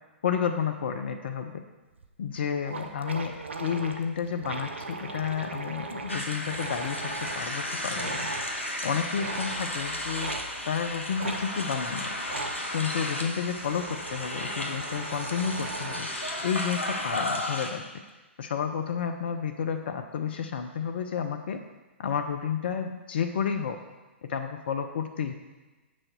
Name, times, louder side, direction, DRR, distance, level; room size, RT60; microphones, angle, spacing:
voice 1, 0.2-1.5 2.2-3.3 3.6-8.3 8.8-10.3 10.7-12.1 12.7-16.1 16.4-17.8 18.4-21.6 22.0-23.8 24.3-25.3, left 7 dB, 55° left, 6 dB, 0.6 m, -31 dB
sound 1, 2.0-2.1 2.4-2.5 2.6-7.5 7.9-8.5 9.1-9.7 10.2-10.5 11.2-11.4 12.2-12.6 13.4-16.1, right 3 dB, 65° right, 0.8 m, -38 dB
sound 2, 6.1-17.7, left 1 dB, 75° left, 1.2 m, -34 dB
7.7 x 6.2 x 4.5 m, 1.2 s
figure-of-eight pair, 115°, 7 cm